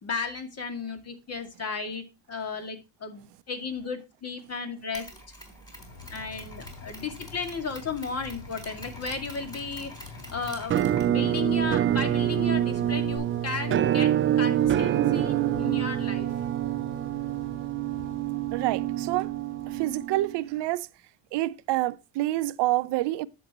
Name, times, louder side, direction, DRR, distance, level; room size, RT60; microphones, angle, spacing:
voice 1, 0.0-5.1 6.1-16.3, left 4 dB, 35° left, 2.2 m, -34 dB
Mechanisms, 4.9-13.2, equal, 10° left, 4.0 m, -47 dB
sound 1, 5.7-20.7, left 3 dB, 70° left, 2.8 m, -46 dB
Musical instrument, 10.7-20.5, right 11 dB, 30° right, 0.4 m, -26 dB
voice 2, 18.5-19.3 19.7-20.9 21.3-23.3, right 17 dB, 70° right, 0.7 m, -27 dB
10.5 x 7.9 x 3.0 m
cardioid pair, 135°, 43 cm